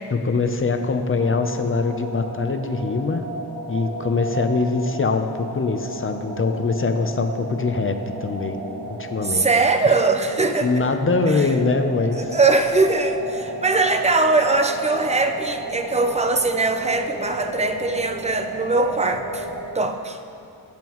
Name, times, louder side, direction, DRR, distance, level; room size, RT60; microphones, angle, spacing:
voice 1, 0.1-3.2 3.7-8.6 9.0-9.5 10.6-12.3, left 4 dB, 30° left, 6 dB, 0.7 m, -23 dB
sound 1, 1.2-19.6, right 2 dB, 90° right, 2.4 m, -33 dB
voice 2, 9.2-10.7 11.3-11.5 12.2-19.5 19.7-20.2, right 3 dB, 15° right, 6 dB, 0.6 m, -21 dB
21.5 x 7.6 x 3.1 m, 2.6 s
wide cardioid pair, 145°, 40 cm